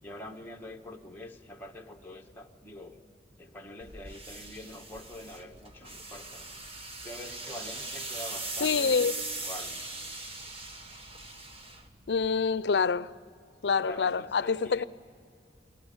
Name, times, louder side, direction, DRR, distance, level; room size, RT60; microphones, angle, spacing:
voice 1, 0.0-3.0 3.4-6.5 7.0-9.0 9.4-9.8 13.8-14.9, left 1 dB, 10° left, 1.6 m, -45 dB
sound 1, 3.8-12.4, right 2 dB, 35° right, 1.5 m, -40 dB
voice 2, 8.6-9.1 12.1-13.1 13.6-14.8, left 5 dB, 70° left, 0.5 m, -26 dB
22.0 x 19.5 x 9.5 m
head